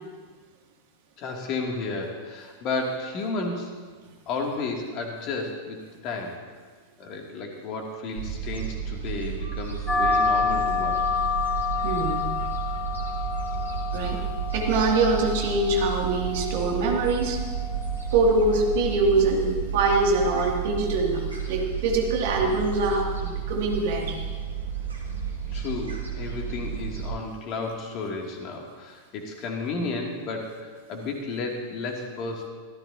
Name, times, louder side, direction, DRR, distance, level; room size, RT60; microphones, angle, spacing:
voice 1, 1.2-3.7 4.3-6.4 7.0-11.1 25.5-32.5, left 3 dB, 40° left, 1 dB, 2.7 m, -32 dB
Gull seagull, 8.2-27.1, right 7 dB, 75° right, 2.8 m, -32 dB
sound 1, 9.9-18.9, left 5 dB, 15° left, 2.0 m, -29 dB
voice 2, 11.8-12.3 13.9-14.2 14.5-17.4 18.1-24.2, right 3 dB, 50° right, 0 dB, 2.6 m, -24 dB
25.0 x 15.0 x 2.9 m, 1.5 s
figure-of-eight pair, 90°, 0 cm